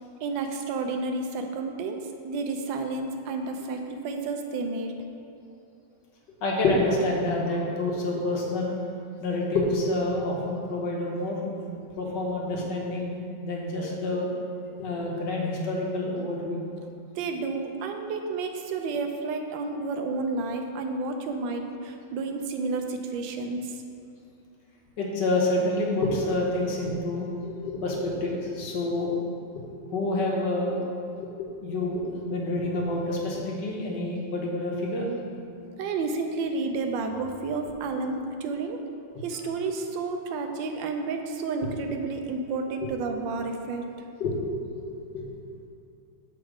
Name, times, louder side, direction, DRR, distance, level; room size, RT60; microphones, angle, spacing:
voice 1, 0.2-4.9 17.1-23.8 35.8-38.8 39.2-43.8, right 3 dB, 85° right, 4 dB, 1.3 m, -31 dB
voice 2, 6.4-8.8 9.2-11.5 11.9-14.3 14.8-16.6 25.0-29.2 29.5-29.6 29.9-30.8 31.2-35.1 44.2-44.4 44.7-44.8 45.1-45.3, left 2 dB, 70° left, -2 dB, 1.6 m, -28 dB
6.5 x 4.2 x 4.8 m, 2.6 s
omnidirectional pair, 2.0 m